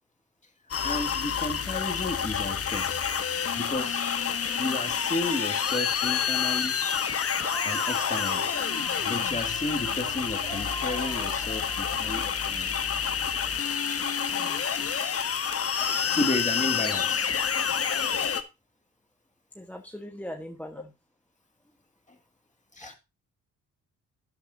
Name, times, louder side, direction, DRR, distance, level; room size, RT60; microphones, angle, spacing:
sound 1, 0.7-18.4, left 7 dB, 40° left, 1.2 m, -28 dB
voice 1, 0.8-2.9 3.6-4.0 4.6-6.8 7.6-8.5 9.0-12.7 15.8-17.3 22.8-23.0, left 2 dB, 20° left, 6 dB, 2.4 m, -33 dB
sound 2, 7.4-12.3, right 1 dB, 80° right, 5.3 m, -40 dB
voice 2, 19.6-20.9 22.8-23.0, equal, 5° left, 4 dB, 1.3 m, -41 dB
12.0 x 8.9 x 2.8 m, 0.27 s
hypercardioid pair, 45°, 38 cm